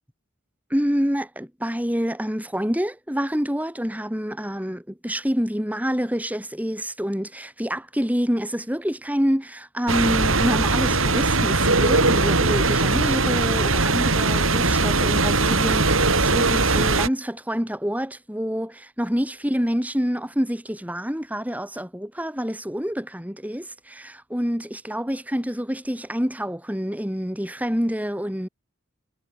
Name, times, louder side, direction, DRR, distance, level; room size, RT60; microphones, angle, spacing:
voice 1, 0.7-28.5, equal, 5° right, 4.1 m, -27 dB
sound 1, 9.9-17.1, right 3 dB, 75° right, 7.1 m, -20 dB
head